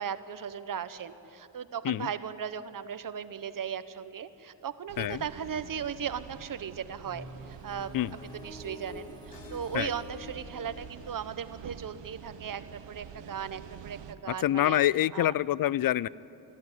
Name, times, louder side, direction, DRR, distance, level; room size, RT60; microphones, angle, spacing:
voice 1, 0.0-7.9 8.4-14.8 15.1-15.3, right 8 dB, 50° right, 12 dB, 1.0 m, -37 dB
sound 1, 4.9-14.1, right 8 dB, 80° right, 1.1 m, -48 dB
sound 2, 7.0-12.8, left 1 dB, 10° left, 0.7 m, -49 dB
sound 3, 9.3-12.2, left 3 dB, 70° left, 2.3 m, -51 dB
voice 2, 14.4-16.1, left 13 dB, 55° left, 22 dB, 0.5 m, -26 dB
22.0 x 14.0 x 9.7 m, 2.9 s
cardioid pair, 95°, 43 cm